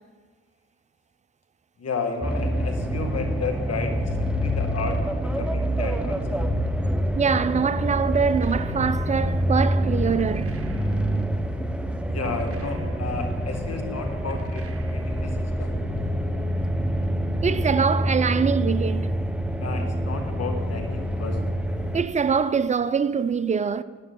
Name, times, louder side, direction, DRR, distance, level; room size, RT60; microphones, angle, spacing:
voice 1, 1.8-5.1 5.4-6.4 12.1-15.7 19.6-21.4, left 4 dB, 45° left, 2.1 m, -33 dB
sound 1, 2.2-22.0, equal, 5° right, 0.9 m, -26 dB
voice 2, 7.1-10.5 17.4-19.1 21.9-23.8, right 6 dB, 20° right, 0.5 m, -23 dB
sound 2, 8.1-9.2 10.2-11.3 12.2-13.3 14.3-15.4, right 6 dB, 40° right, 1.1 m, -43 dB
13.0 x 9.1 x 3.9 m
hypercardioid pair, 55°, 35 cm